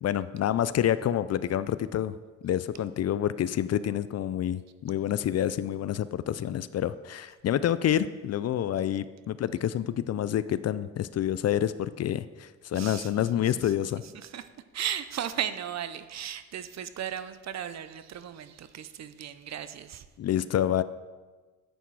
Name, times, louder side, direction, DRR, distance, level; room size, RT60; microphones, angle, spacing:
voice 1, 0.0-2.2 2.4-14.0 20.2-20.8, left 11 dB, 50° left, 15 dB, 0.4 m, -28 dB
voice 2, 12.7-13.7 14.0-14.5 14.7-20.1, right 9 dB, 55° right, 12 dB, 0.7 m, -36 dB
10.0 x 8.3 x 4.7 m, 1.3 s
cardioid pair, 105°, 33 cm